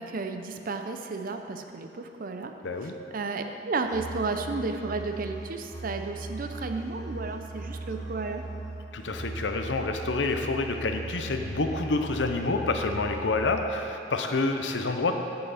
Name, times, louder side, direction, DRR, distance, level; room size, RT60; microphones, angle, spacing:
voice 1, 0.0-2.5 2.8-8.4, right 3 dB, 50° right, 6 dB, 0.6 m, -33 dB
voice 2, 2.6-2.9 8.9-15.1, left 3 dB, 85° left, 5 dB, 0.7 m, -28 dB
Musical instrument, 3.8-13.8, right 2 dB, 45° left, 2.0 m, -39 dB
15.0 x 5.7 x 4.2 m, 2.7 s
head